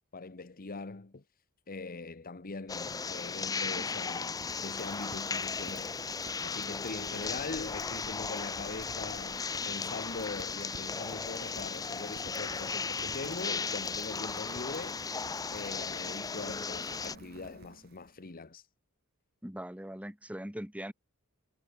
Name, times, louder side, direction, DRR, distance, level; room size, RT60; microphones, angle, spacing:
voice 1, 0.1-1.2 1.7-5.9 6.4-15.1 15.5-18.6, left 3 dB, 40° left, 1.1 m, -42 dB
sound 1, 2.7-17.1, left 5 dB, 15° left, 0.4 m, -36 dB
Rain, 3.5-18.3, right 3 dB, 45° right, 1.0 m, -52 dB
voice 2, 19.4-20.9, right 1 dB, 5° right, 1.6 m, -40 dB
head